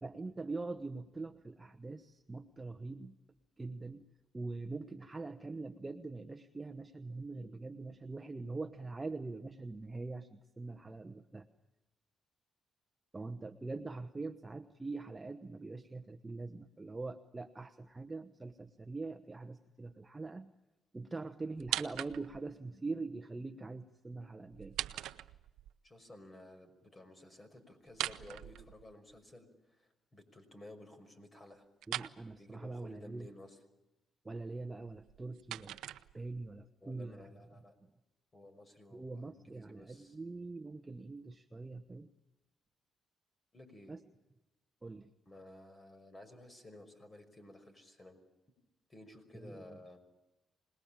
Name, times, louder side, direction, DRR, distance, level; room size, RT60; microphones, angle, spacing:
voice 1, 0.0-3.1 3.6-4.0 4.3-11.4 13.1-20.5 20.9-24.7 31.9-33.3 34.2-35.8 36.1-37.2 38.9-42.1 43.9-44.0 44.8-45.1 49.4-49.6, right 3 dB, 20° right, 7 dB, 1.1 m, -43 dB
sound 1, 21.6-22.5 24.5-25.7 27.9-29.2 31.8-32.2 34.9-36.5, right 13 dB, 85° right, 0.8 m, -41 dB
voice 2, 25.8-31.7 32.4-33.6 36.8-37.7 38.3-40.2 43.5-43.9 45.3-48.2 48.9-50.0, left 1 dB, 25° left, 8 dB, 5.6 m, -54 dB
26.5 x 20.0 x 9.0 m, 1.0 s
cardioid pair, 90°, 0 cm